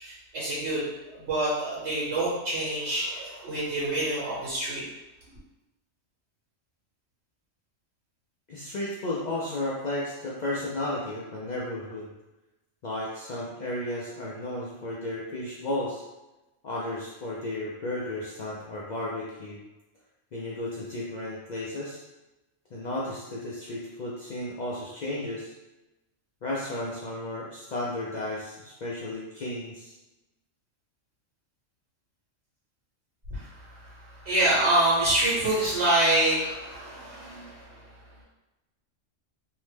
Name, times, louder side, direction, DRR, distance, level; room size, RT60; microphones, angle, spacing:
voice 1, 0.0-4.8 33.3-37.9, right 1 dB, 65° right, -9 dB, 1.2 m, -27 dB
voice 2, 8.5-12.1 12.8-16.0 16.6-19.6 20.3-22.0 22.7-25.5 26.4-29.9, left 1 dB, 75° left, -6 dB, 0.4 m, -33 dB
2.8 x 2.1 x 3.2 m, 1.0 s
omnidirectional pair, 1.3 m